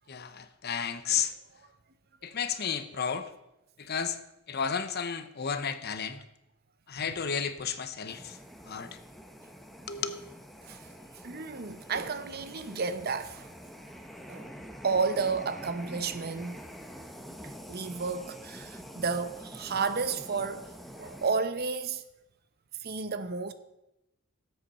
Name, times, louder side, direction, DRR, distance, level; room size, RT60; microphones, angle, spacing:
voice 1, 0.1-1.3 2.2-3.3 3.8-4.2 4.5-6.2 6.9-8.4 8.7-9.0 9.9-10.2, left 7 dB, 50° left, 0.8 m, -32 dB
sound 1, 8.1-21.3, equal, ahead, 0.9 m, -46 dB
voice 2, 11.2-13.5 14.3-14.5 14.8-16.6 17.4-22.0 22.8-23.5, right 4 dB, 50° right, 0.7 m, -32 dB
18.0 x 8.0 x 4.3 m
head